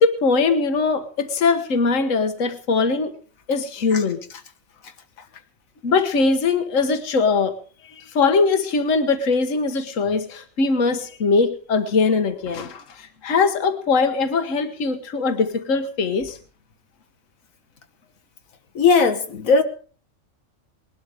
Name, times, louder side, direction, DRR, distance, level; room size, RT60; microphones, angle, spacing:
voice 1, 0.0-3.1 3.5-4.2 5.8-7.5 8.0-16.4, left 4 dB, 70° left, 1.6 m, -21 dB
voice 2, 18.7-19.6, left 4 dB, 90° left, 1.7 m, -18 dB
20.0 x 12.0 x 4.9 m
omnidirectional pair, 1.4 m